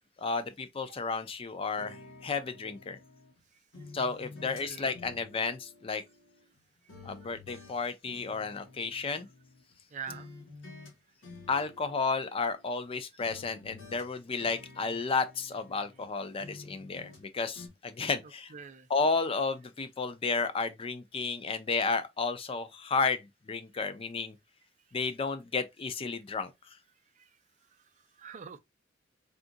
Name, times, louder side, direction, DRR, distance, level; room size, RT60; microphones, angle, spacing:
voice 1, 0.2-3.0 3.9-6.0 7.0-9.3 11.5-18.5 18.9-24.3 24.9-26.5, left 4 dB, 30° left, 0.4 m, -32 dB
sound 1, 1.8-3.4 3.7-6.6 6.9-9.8 10.1-10.9 11.2-12.9 13.2-16.1 16.4-17.3 17.5-17.7, left 3 dB, 90° left, 1.4 m, -51 dB
voice 2, 4.4-4.9 7.5-7.6 9.9-10.3 18.5-18.9 23.7-23.8 27.2-27.3 28.2-28.6, right 6 dB, 40° right, 0.4 m, -44 dB
3.8 x 2.4 x 2.5 m
head